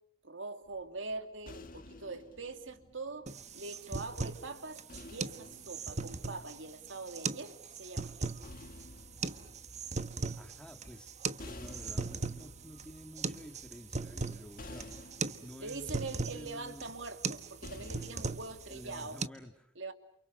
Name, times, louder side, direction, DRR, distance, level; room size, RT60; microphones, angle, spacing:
voice 1, 0.2-3.3 3.5-8.3 15.6-19.2 19.8-19.9, right 3 dB, 75° right, 7 dB, 2.7 m, -43 dB
sound 1, 0.7-4.0 4.9-7.2 8.1-19.2, left 1 dB, 45° left, 1.8 m, -52 dB
sound 2, 3.3-19.3, right 4 dB, 40° right, 1.2 m, -39 dB
voice 2, 10.3-15.1 15.4-16.9 18.7-19.7, equal, 5° left, 6 dB, 2.2 m, -51 dB
29.5 x 28.5 x 6.7 m, 0.65 s
head